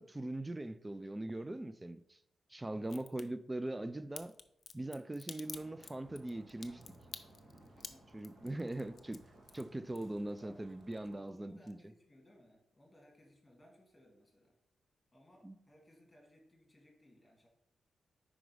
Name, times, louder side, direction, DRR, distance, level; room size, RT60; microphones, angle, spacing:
voice 1, 0.0-2.2 2.5-4.3 4.7-6.8 8.1-9.2 9.5-11.8 15.4-15.6, right 1 dB, 15° right, 0.3 m, -41 dB
voice 2, 2.6-3.1 7.9-8.1 10.4-10.6 11.2-14.5 15.1-17.5, equal, 10° left, 2.0 m, -63 dB
Crack, 2.8-3.2 4.1-10.4 10.7-11.4 11.7-11.8, left 6 dB, 50° left, 0.5 m, -49 dB
sound 1, 5.4-11.2, right 1 dB, 60° right, 1.5 m, -60 dB
5.1 x 4.9 x 4.7 m
wide cardioid pair, 130°, 0 cm